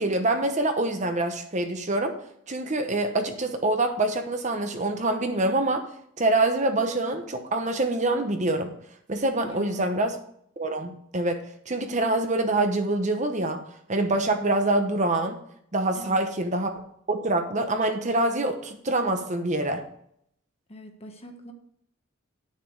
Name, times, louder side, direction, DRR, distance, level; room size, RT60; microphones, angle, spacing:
voice 1, 0.0-2.1 2.5-5.8 6.2-8.7 9.1-10.1 10.6-13.6 13.9-15.4 15.7-16.7 17.1-19.8, right 2 dB, 35° right, 6 dB, 0.9 m, -25 dB
voice 2, 9.4-10.0 15.9-16.2 20.7-21.5, equal, 30° left, 5 dB, 1.2 m, -43 dB
10.0 x 6.7 x 4.8 m, 0.69 s
head